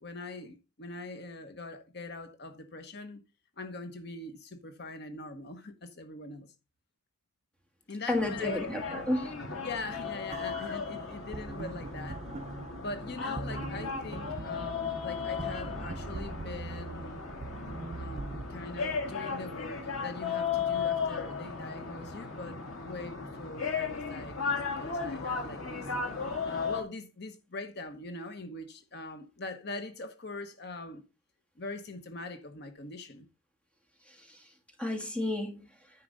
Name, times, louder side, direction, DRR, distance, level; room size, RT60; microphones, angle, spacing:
voice 1, 0.0-3.2 3.6-6.5 7.9-8.6 8.8-9.0 9.6-12.3 12.8-17.2 18.0-25.9 26.4-31.0 31.6-33.3, left 3 dB, 50° left, 1.0 m, -42 dB
sound 1, 8.1-26.8, left 5 dB, 85° left, 2.2 m, -36 dB
voice 2, 8.1-9.3 10.5-10.7 34.1-34.5 34.8-35.6, left 1 dB, 5° left, 1.5 m, -32 dB
sound 2, 10.3-18.4, right 3 dB, 30° right, 0.4 m, -42 dB
9.7 x 4.8 x 5.2 m
head